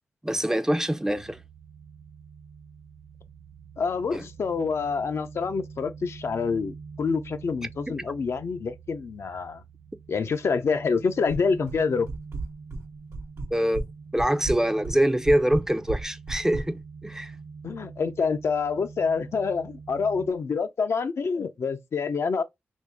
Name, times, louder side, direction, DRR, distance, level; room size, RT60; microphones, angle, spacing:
voice 1, 0.2-1.4 4.1-4.3 7.9-8.0 13.5-13.8 14.1-17.3, right 1 dB, 10° right, 0.4 m, -24 dB
sound 1, 1.1-20.3, right 5 dB, 65° right, 0.5 m, -45 dB
voice 2, 3.8-9.6 10.1-12.1 17.6-22.4, left 5 dB, 70° left, 0.5 m, -27 dB
sound 2, 11.3-11.8 12.1-12.8 13.1-13.9 14.2-16.7, right 3 dB, 85° right, 1.1 m, -33 dB
2.9 x 2.6 x 3.4 m
cardioid pair, 55°, 5 cm